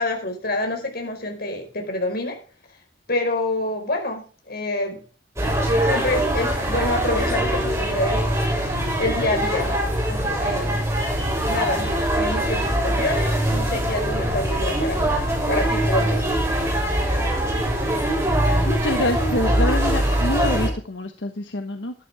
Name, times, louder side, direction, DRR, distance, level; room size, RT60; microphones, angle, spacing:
voice 1, 0.0-2.4 3.1-5.0 5.8-8.2 9.0-10.8 11.4-16.4, left 2 dB, 60° left, 4 dB, 4.8 m, -27 dB
sound 1, 5.4-20.7, right 1 dB, 15° right, 7.0 m, -22 dB
voice 2, 18.6-21.9, left 1 dB, 85° left, 6 dB, 1.3 m, -26 dB
12.5 x 12.0 x 3.5 m, 0.37 s
head